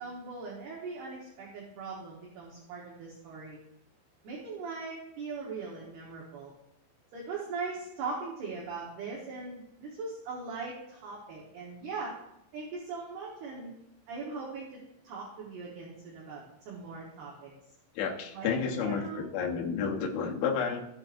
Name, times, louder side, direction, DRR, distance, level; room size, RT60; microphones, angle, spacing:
voice 1, 0.0-3.6 4.2-6.5 7.1-12.1 12.5-13.7 14.1-14.8 15.0-17.5 18.3-19.3, right 4 dB, 65° right, -4 dB, 2.9 m, -40 dB
voice 2, 18.0-20.8, left 6 dB, 75° left, 0 dB, 2.3 m, -31 dB
14.5 x 7.7 x 2.6 m, 0.82 s
omnidirectional pair, 5.7 m